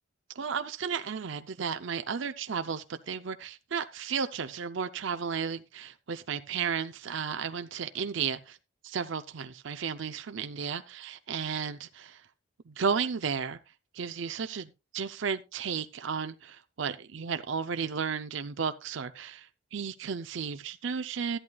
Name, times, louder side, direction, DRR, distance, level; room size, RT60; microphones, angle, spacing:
voice 1, 0.4-8.6 8.8-12.2 12.7-13.6 13.9-14.7 14.9-21.4, right 6 dB, 60° right, 0.5 m, -33 dB
13.5 x 11.0 x 2.3 m
head